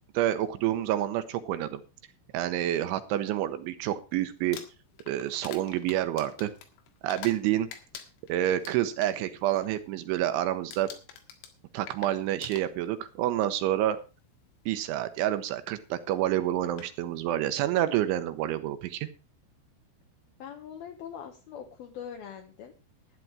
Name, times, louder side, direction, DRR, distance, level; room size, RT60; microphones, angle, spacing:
voice 1, 0.1-1.8 2.3-4.6 5.1-6.5 7.0-7.7 8.3-10.9 11.7-14.0 14.7-19.1, right 12 dB, 75° right, 10 dB, 3.0 m, -28 dB
Crumpling crinkling, 4.4-7.4 7.7-9.1 9.5-9.8 10.1-10.4 10.7-13.1 14.0-14.1 16.1-16.2 16.6-16.9, left 8 dB, 90° left, 4.4 m, -46 dB
voice 2, 20.4-22.7, left 8 dB, 70° left, 4 dB, 2.4 m, -42 dB
12.0 x 10.5 x 4.7 m, 0.31 s
omnidirectional pair, 5.9 m